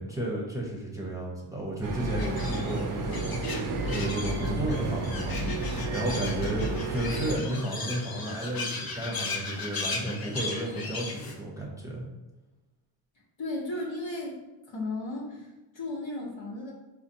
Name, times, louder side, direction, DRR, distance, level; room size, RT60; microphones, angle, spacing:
voice 1, 0.0-3.6 3.8-5.4 5.7-12.0, right 1 dB, 5° right, -4 dB, 0.9 m, -33 dB
sound 1, 1.8-7.4, right 2 dB, 40° right, 0.5 m, -31 dB
sound 2, 2.2-11.3, left 3 dB, 45° left, 0.7 m, -37 dB
sound 3, 4.2-8.7, left 2 dB, 90° left, 0.9 m, -49 dB
voice 2, 13.4-16.7, left 2 dB, 60° left, -3 dB, 1.1 m, -35 dB
4.1 x 2.3 x 2.7 m, 1.1 s
cardioid pair, 60°, 50 cm